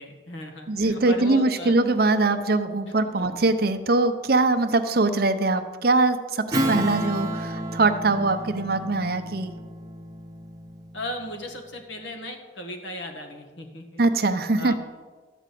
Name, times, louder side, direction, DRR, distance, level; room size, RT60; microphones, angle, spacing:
voice 1, 0.0-1.7 3.2-3.4 10.9-14.0 14.6-14.7, left 1 dB, 70° left, 4 dB, 1.7 m, -36 dB
voice 2, 0.7-9.5 14.0-14.7, right 2 dB, 50° right, 9 dB, 0.7 m, -22 dB
Strum, 6.5-11.4, equal, 20° right, 1.0 m, -31 dB
12.5 x 5.1 x 8.4 m, 1.4 s
head